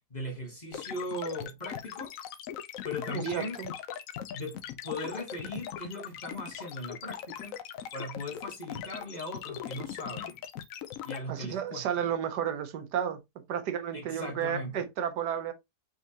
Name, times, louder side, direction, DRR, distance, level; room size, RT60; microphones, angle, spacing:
voice 1, 0.1-2.1 2.8-3.6 4.3-7.6 7.9-10.4 11.0-12.1 13.9-14.9, left 1 dB, 30° left, 1.2 m, -38 dB
sound 1, 0.7-11.2, left 10 dB, 70° left, 0.9 m, -40 dB
voice 2, 3.1-3.7 11.3-13.2 13.5-15.5, right 9 dB, 80° right, 1.4 m, -32 dB
5.2 x 3.7 x 2.8 m
omnidirectional pair, 1.8 m